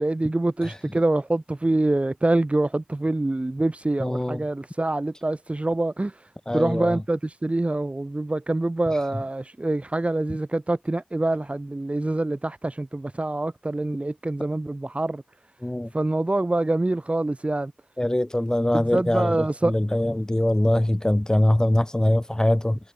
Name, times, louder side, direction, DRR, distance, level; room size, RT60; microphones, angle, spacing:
voice 1, 0.0-15.2 15.9-17.7 18.7-19.7, right 2 dB, 40° right, 5.4 m, -25 dB
voice 2, 4.0-4.4 6.5-7.0 15.6-15.9 18.0-22.8, left 1 dB, 20° left, 5.5 m, -23 dB
wide cardioid pair, 45°, 3 cm